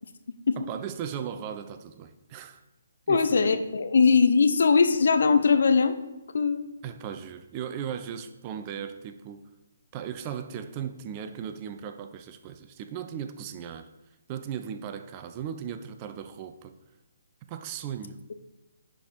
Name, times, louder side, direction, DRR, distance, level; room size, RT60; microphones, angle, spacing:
voice 1, 0.6-2.6 3.1-3.6 6.8-9.5 9.9-13.9 14.3-16.7 17.5-18.2, right 8 dB, 30° right, 9 dB, 0.7 m, -37 dB
voice 2, 3.1-5.9 6.3-6.7, left 5 dB, 60° left, 9 dB, 0.9 m, -21 dB
10.0 x 4.9 x 5.3 m, 1.0 s
figure-of-eight pair, 140°, 0 cm